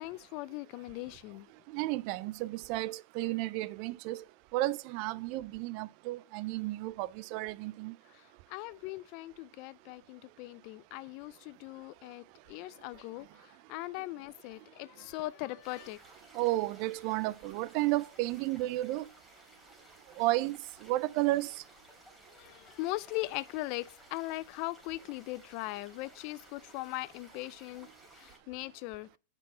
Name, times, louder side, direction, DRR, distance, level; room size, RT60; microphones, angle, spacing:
voice 1, 0.0-1.5 8.1-16.0 22.3-27.9 28.1-29.1, left 19 dB, 45° left, 0.4 m, -40 dB
voice 2, 1.7-4.2 4.5-7.9 16.3-19.1 20.2-21.6, right 17 dB, 45° right, 0.3 m, -32 dB
sound 1, 15.6-28.4, right 1 dB, ahead, 3.5 m, -58 dB
9.4 x 4.5 x 4.3 m
supercardioid pair, 150°, 0 cm